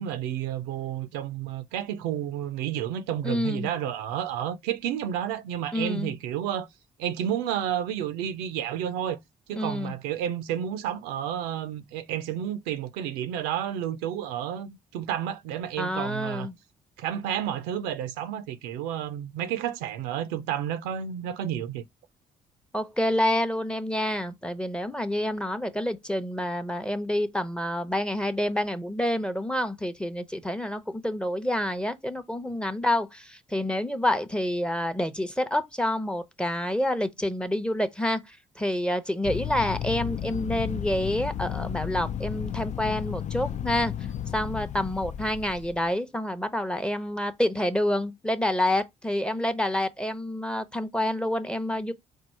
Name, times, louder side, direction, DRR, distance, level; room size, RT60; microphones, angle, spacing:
voice 1, 0.0-6.7 7.0-9.2 9.5-16.5 17.0-21.8, right 10 dB, 90° right, 0.5 m, -31 dB
voice 2, 3.2-3.7 5.7-6.2 9.6-10.0 15.8-16.5 22.7-43.9 44.3-51.9, left 1 dB, 5° left, 0.7 m, -28 dB
sound 1, 39.2-45.9, left 10 dB, 50° left, 0.4 m, -33 dB
4.4 x 2.4 x 4.4 m
supercardioid pair, 60°, 16 cm